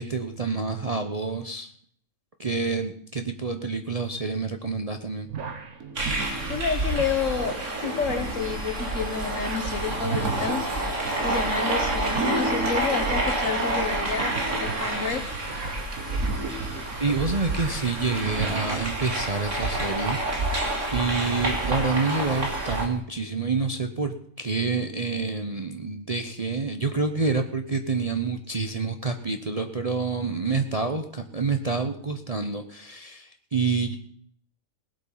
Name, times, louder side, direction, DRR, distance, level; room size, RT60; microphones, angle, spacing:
voice 1, 0.0-1.7 2.4-5.3 17.0-34.0, right 4 dB, 35° right, 6 dB, 0.7 m, -28 dB
sound 1, 5.3-19.1, right 4 dB, 75° right, 1.8 m, -36 dB
sound 2, 6.0-22.9, right 2 dB, 55° right, 2.4 m, -28 dB
voice 2, 6.5-10.7 11.2-15.2, left 6 dB, 60° left, 8 dB, 1.6 m, -29 dB
18.5 x 8.2 x 5.6 m, 0.64 s
omnidirectional pair, 1.5 m